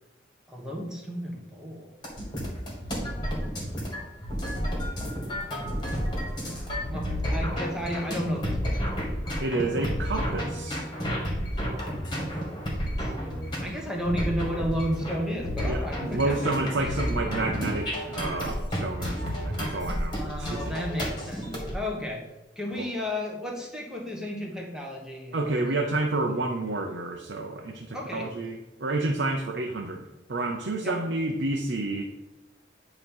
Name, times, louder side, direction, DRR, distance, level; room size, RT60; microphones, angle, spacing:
voice 1, 0.5-1.9 2.9-3.2 6.4-8.8 13.0-16.6 20.1-22.2 22.6-25.9 27.9-28.3 30.8-31.0, equal, 5° right, -1 dB, 1.2 m, -33 dB
sound 1, 2.0-21.7, equal, 25° left, 1.8 m, -31 dB
voice 2, 9.4-10.9 15.6-20.8 22.8-22.9 25.3-30.0 30.3-32.1, right 2 dB, 65° right, 2 dB, 0.7 m, -29 dB
8.9 x 3.0 x 5.4 m, 1.0 s
head